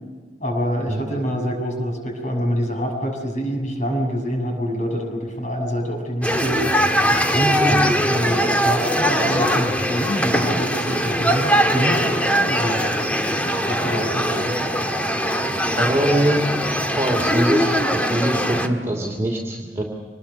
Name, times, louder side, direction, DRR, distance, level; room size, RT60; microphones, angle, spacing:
voice 1, 0.4-6.6 7.1-12.8 13.7-14.7, equal, 40° left, 2 dB, 6.9 m, -25 dB
sound 1, 6.2-18.7, equal, 10° left, 1.7 m, -21 dB
voice 2, 15.8-16.4 17.0-19.8, right 1 dB, 15° right, -1 dB, 2.7 m, -23 dB
26.0 x 20.5 x 7.0 m, 1.5 s
head